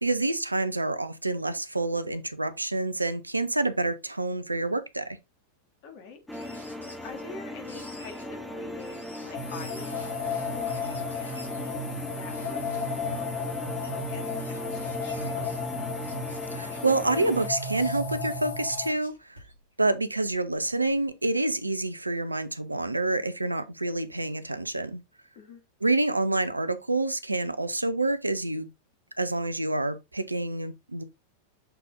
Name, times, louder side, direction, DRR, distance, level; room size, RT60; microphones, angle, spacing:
voice 1, 0.0-5.2 16.5-19.4 19.8-25.0 25.8-28.7 29.2-31.0, right 2 dB, 85° right, 0.6 m, -28 dB
voice 2, 5.8-6.2 6.5-15.6 25.3-25.6, left 4 dB, 45° left, 2.0 m, -47 dB
sound 1, 6.3-7.3 7.6-8.2 8.8-10.1 10.5-11.7 12.2-12.3 13.0-13.1 13.8-15.6 16.0-16.9 17.4-19.7 20.3-21.1, left 1 dB, 85° left, 3.3 m, -51 dB
sound 2, 6.3-17.5, left 1 dB, 5° left, 1.3 m, -38 dB
sound 3, 9.3-18.9, left 4 dB, 70° left, 1.8 m, -33 dB
6.9 x 4.1 x 3.5 m
figure-of-eight pair, 90°, 0 cm